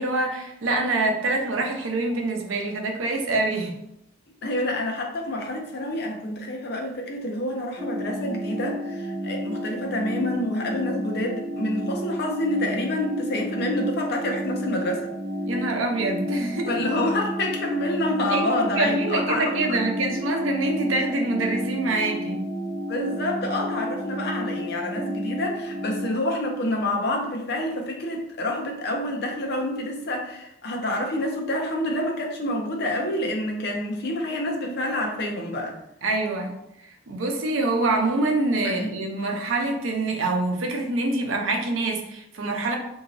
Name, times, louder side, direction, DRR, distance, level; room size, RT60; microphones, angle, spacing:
voice 1, 0.0-3.8 15.5-16.8 18.3-22.4 36.0-36.5 37.1-42.8, right 2 dB, 85° right, 2 dB, 0.6 m, -25 dB
voice 2, 4.4-15.1 16.7-19.8 22.9-35.8 38.6-39.0, left 1 dB, 55° left, 1 dB, 0.6 m, -28 dB
sound 1, 7.8-26.1, equal, 15° right, 0.4 m, -31 dB
2.9 x 2.7 x 2.6 m, 0.82 s
head